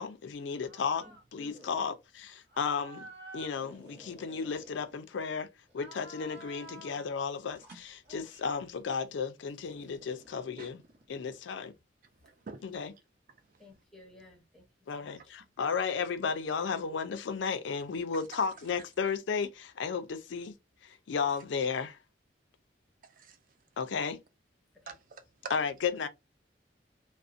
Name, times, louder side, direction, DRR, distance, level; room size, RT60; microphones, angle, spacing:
voice 1, 0.0-1.0 1.3-3.1 3.3-5.5 5.7-10.8 11.1-11.7 12.6-12.9 14.9-20.6 20.8-22.0 23.8-24.2 25.5-26.1, left 5 dB, 90° left, 0.4 m, -34 dB
sound 1, 0.6-1.2 1.5-1.9 2.5-5.3 5.7-7.1 7.5-8.6 9.7-11.5, right 1 dB, 65° right, 0.7 m, -52 dB
voice 2, 1.0-1.5 13.6-14.6 15.0-15.4 24.8-24.9, left 1 dB, 5° left, 0.7 m, -56 dB
voice 3, 12.2-12.8 15.1-15.2 23.1-23.4 24.9-25.6, right 4 dB, 45° right, 0.4 m, -46 dB
2.6 x 2.0 x 2.4 m
head